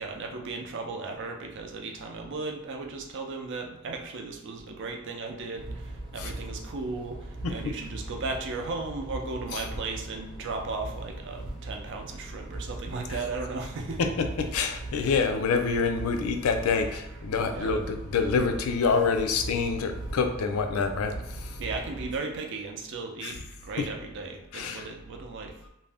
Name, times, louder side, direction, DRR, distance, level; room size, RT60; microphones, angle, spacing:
voice 1, 0.0-14.1 17.5-17.7 21.6-25.5, right 3 dB, 60° right, 2 dB, 0.5 m, -36 dB
sound 1, 5.5-22.2, right 2 dB, 25° right, 0.7 m, -40 dB
voice 2, 14.0-21.6 23.2-23.3 23.8-23.9 24.5-24.8, left 5 dB, 85° left, 6 dB, 0.4 m, -27 dB
2.5 x 2.1 x 3.3 m, 0.89 s
head